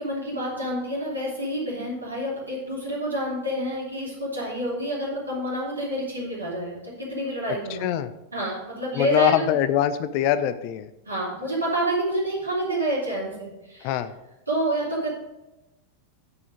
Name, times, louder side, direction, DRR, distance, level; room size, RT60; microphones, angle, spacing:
voice 1, 0.0-8.0 8.3-9.5 11.0-13.9 14.5-15.1, right 1 dB, 80° right, -5 dB, 3.1 m, -28 dB
voice 2, 7.7-8.1 8.9-10.9 13.8-14.1, left 11 dB, 45° left, 13 dB, 0.5 m, -23 dB
9.5 x 5.0 x 5.0 m, 0.97 s
figure-of-eight pair, 90°, 0 cm